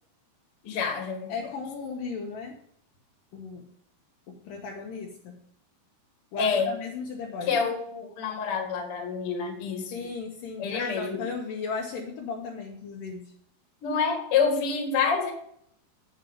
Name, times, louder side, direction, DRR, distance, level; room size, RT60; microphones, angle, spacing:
voice 1, 0.6-1.3 6.4-6.7 7.5-10.0 10.6-11.2 13.8-15.3, left 5 dB, 45° left, 2 dB, 2.2 m, -27 dB
voice 2, 1.3-2.6 3.3-3.7 4.3-5.4 6.3-7.7 9.9-13.3, left 4 dB, 70° left, 0 dB, 2.4 m, -36 dB
8.1 x 7.8 x 5.1 m, 0.68 s
omnidirectional pair, 4.5 m